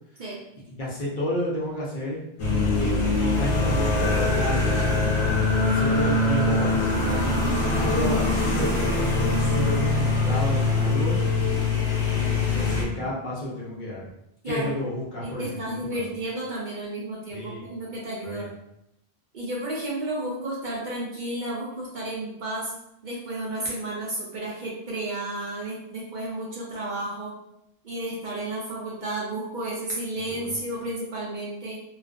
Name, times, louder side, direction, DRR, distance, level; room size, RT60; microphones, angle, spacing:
voice 1, 0.7-2.2 2.6-4.9 5.6-11.2 12.1-14.1 14.4-16.2 17.3-17.7 18.2-18.5 30.3-30.6, left 1 dB, 55° left, -6 dB, 0.8 m, -31 dB
sound 1, 2.4-12.8, left 2 dB, 85° left, 1.0 m, -23 dB
sound 2, 3.9-10.8, left 1 dB, 25° left, 0.3 m, -35 dB
voice 2, 14.4-14.7 15.2-18.5 19.3-22.7 23.0-27.3 27.8-31.8, right 1 dB, 50° right, -5 dB, 0.7 m, -32 dB
2.4 x 2.3 x 2.4 m, 0.82 s
omnidirectional pair, 1.1 m